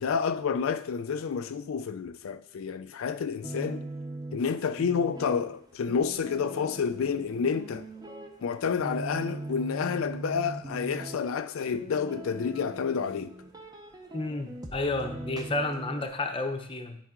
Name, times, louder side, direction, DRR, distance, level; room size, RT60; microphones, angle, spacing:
voice 1, 0.0-3.9 4.3-7.8 8.4-13.3, left 6 dB, 75° left, 0.4 m, -29 dB
sound 1, 3.4-16.1, right 2 dB, 20° right, 0.7 m, -41 dB
voice 2, 14.1-17.0, left 2 dB, 25° left, 0.7 m, -31 dB
10.5 x 4.8 x 3.7 m
head